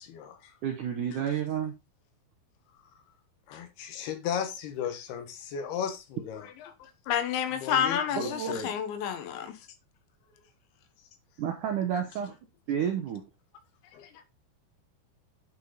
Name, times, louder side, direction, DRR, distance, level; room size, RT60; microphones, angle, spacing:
voice 1, 0.0-0.5 3.5-6.5 7.6-8.7 11.9-12.0 13.9-14.0, left 8 dB, 70° left, 3.0 m, -35 dB
voice 2, 0.6-1.7 8.2-8.7 11.4-12.4 12.7-13.2, right 9 dB, 75° right, 1.9 m, -30 dB
voice 3, 6.8-9.6, left 9 dB, 85° left, 3.5 m, -30 dB
9.0 x 5.9 x 3.9 m
omnidirectional pair, 5.0 m